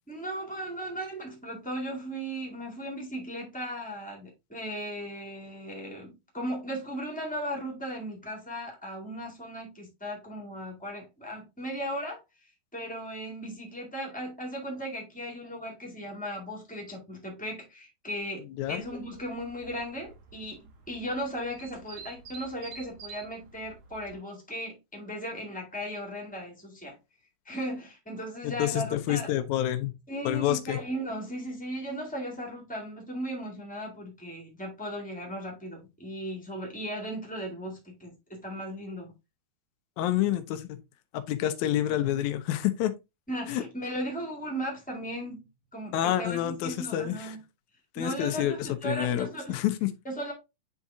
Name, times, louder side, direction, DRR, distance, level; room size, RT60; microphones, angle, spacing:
voice 1, 0.1-12.2 12.7-27.0 27.4-29.3 30.1-39.1 43.3-45.4 45.7-47.4 47.9-49.6 50.0-50.3, equal, 10° left, 0.5 m, -37 dB
sound 1, 18.6-24.2, right 5 dB, 70° right, 1.7 m, -49 dB
voice 2, 28.4-29.9 30.2-30.8 40.0-40.8 41.1-42.9 43.5-43.6 45.9-47.3 47.9-49.9, left 12 dB, 85° left, 1.6 m, -28 dB
10.0 x 3.6 x 2.7 m
omnidirectional pair, 4.4 m